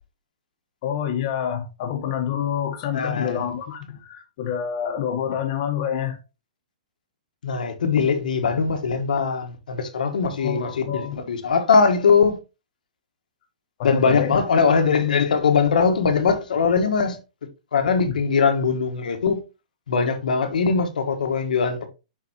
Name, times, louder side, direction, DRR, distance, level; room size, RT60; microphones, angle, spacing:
voice 1, 0.8-6.2 10.4-11.2 13.8-14.4 18.0-18.2, left 9 dB, 40° left, 1.2 m, -27 dB
voice 2, 2.9-3.4 7.4-12.4 13.8-17.2 17.7-19.4 19.9-21.9, left 5 dB, 85° left, 1.5 m, -21 dB
6.8 x 4.6 x 3.0 m
hypercardioid pair, 160°, 4 cm